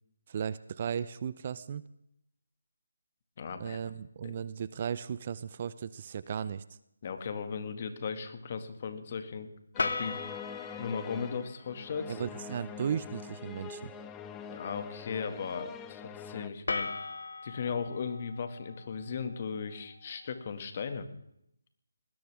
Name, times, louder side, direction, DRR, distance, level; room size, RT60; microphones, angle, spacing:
voice 1, 0.3-1.8 3.6-6.6 12.1-13.9, right 7 dB, 35° right, 16 dB, 0.6 m, -36 dB
voice 2, 3.4-3.8 4.2-4.4 7.0-9.5 9.8-10.1 10.8-12.2 14.5-16.9 17.4-21.1, left 6 dB, 40° left, 8 dB, 2.1 m, -37 dB
sound 1, 9.7-16.5, left 7 dB, 10° left, 0.8 m, -44 dB
sound 2, 9.8-11.8 16.7-19.8, left 3 dB, 65° left, 1.4 m, -38 dB
20.5 x 17.5 x 3.6 m, 0.76 s
figure-of-eight pair, 160°, 0 cm